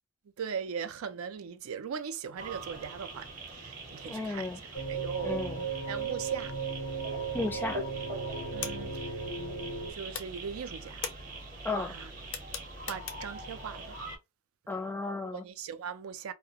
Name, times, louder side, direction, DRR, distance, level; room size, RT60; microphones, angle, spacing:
voice 1, 0.4-5.5 5.8-6.6 8.5-9.2 9.9-11.0 11.7-12.4 12.9-14.0 15.3-16.3, right 7 dB, 90° right, 0.4 m, -39 dB
sound 1, 2.4-14.2, right 2 dB, 40° right, 0.8 m, -43 dB
voice 2, 4.0-4.6 5.2-5.6 7.3-7.8 11.6-11.9 14.7-15.4, left 3 dB, 10° left, 0.3 m, -34 dB
sound 2, 4.7-9.9, right 4 dB, 90° left, 0.8 m, -36 dB
sound 3, 8.6-9.8 10.1-13.5, left 7 dB, 65° left, 0.5 m, -41 dB
2.3 x 2.1 x 2.6 m
head